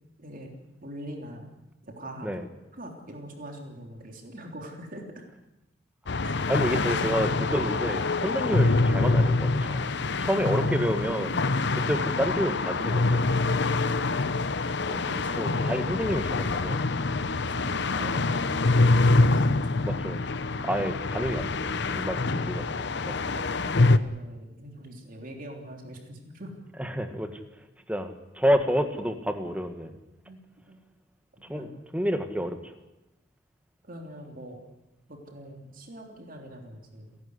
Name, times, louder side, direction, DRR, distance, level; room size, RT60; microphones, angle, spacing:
voice 1, 0.2-0.5 0.8-1.5 1.8-2.3 2.7-5.3 6.2-6.4 6.7-7.5 8.2-8.4 10.2-10.5 11.7-12.0 13.6-14.5 15.0-15.8 17.0-20.0 20.4-20.8 21.9-22.2 23.1-26.5 30.2-30.8 31.5-31.7 33.8-34.6 35.1-37.2, right 1 dB, 50° right, 2 dB, 3.4 m, -43 dB
sound 1, 6.1-24.0, left 3 dB, 65° left, 0.9 m, -25 dB
voice 2, 6.5-9.9 10.2-13.3 14.9-15.0 15.4-16.8 19.8-20.2 20.6-21.6 21.9-23.2 26.8-27.4 27.9-29.9 31.5-32.6, equal, 5° right, 7 dB, 1.8 m, -29 dB
30.0 x 11.5 x 9.7 m, 0.99 s
head